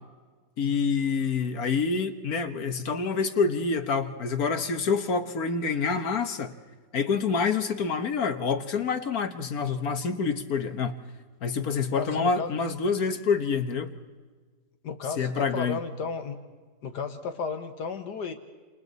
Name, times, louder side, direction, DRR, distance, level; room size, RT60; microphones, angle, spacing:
voice 1, 0.6-6.5 6.9-10.9 11.4-13.9 15.2-15.8, left 5 dB, 65° left, 7 dB, 1.7 m, -27 dB
voice 2, 11.9-12.5 14.8-16.4 16.8-18.3, left 5 dB, 80° left, 6 dB, 1.8 m, -33 dB
29.5 x 27.5 x 4.1 m, 1.4 s
omnidirectional pair, 1.8 m